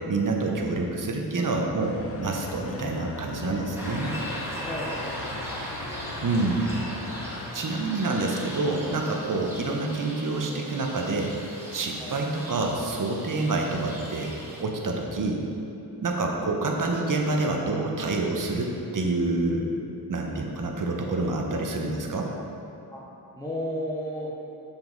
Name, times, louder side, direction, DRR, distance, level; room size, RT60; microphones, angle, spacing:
voice 1, 0.1-4.2 6.2-6.7 7.5-11.3 11.7-14.3 14.6-15.4 16.0-19.7 20.1-22.3, right 3 dB, 50° right, 1 dB, 1.0 m, -27 dB
sound 1, 1.8-7.5, left 3 dB, 35° left, 0.5 m, -39 dB
sound 2, 3.7-14.6, equal, 5° right, 1.6 m, -38 dB
voice 2, 4.6-5.3 5.9-6.1 12.0-12.2 22.9-23.0 23.4-24.3, equal, 10° left, -8 dB, 1.0 m, -34 dB
6.9 x 5.4 x 4.0 m, 2.9 s
cardioid pair, 65°, 39 cm